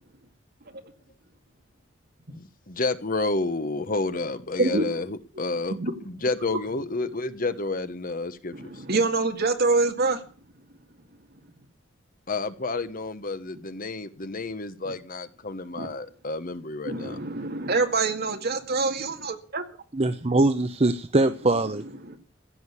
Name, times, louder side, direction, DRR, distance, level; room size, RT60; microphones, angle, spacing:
voice 1, 2.3-5.8 6.1-8.8 12.3-17.2, left 3 dB, 45° left, 12 dB, 1.1 m, -30 dB
voice 2, 8.5-10.2 15.8-15.9 16.9-19.6 22.0-22.2, right 3 dB, 55° right, 6 dB, 2.1 m, -25 dB
voice 3, 19.9-21.8, right 2 dB, 35° right, 10 dB, 0.8 m, -22 dB
16.0 x 6.4 x 9.8 m, 0.40 s
head